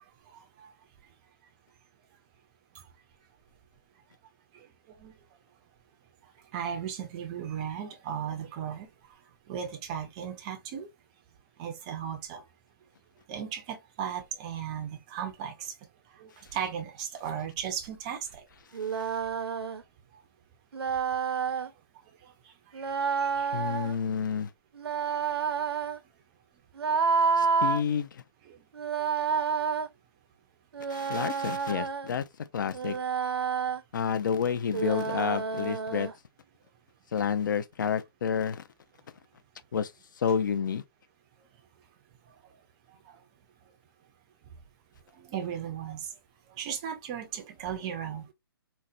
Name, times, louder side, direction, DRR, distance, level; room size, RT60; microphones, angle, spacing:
voice 1, 0.3-0.7 4.5-4.7 5.0-5.2 6.5-9.2 9.5-10.9 11.6-12.4 13.3-15.7 16.1-18.5 21.6-21.7 22.2-23.6 28.5-28.6 42.4-42.6 42.9-43.2 45.1-46.1 46.5-48.3, right 8 dB, 15° right, 0.4 m, -37 dB
sound 1, 18.7-19.8 20.7-21.7 22.7-24.0 24.7-26.0 26.8-27.8 28.7-29.9 30.7-32.1 32.7-33.8 34.7-36.1, right 5 dB, 80° right, 0.6 m, -29 dB
voice 2, 23.5-24.5 27.4-28.2 30.9-32.2 32.5-33.0 33.9-36.1 37.1-38.6 39.7-39.9 40.2-40.8, left 7 dB, 50° left, 0.4 m, -29 dB
4.0 x 2.1 x 2.4 m
hypercardioid pair, 165°, 13 cm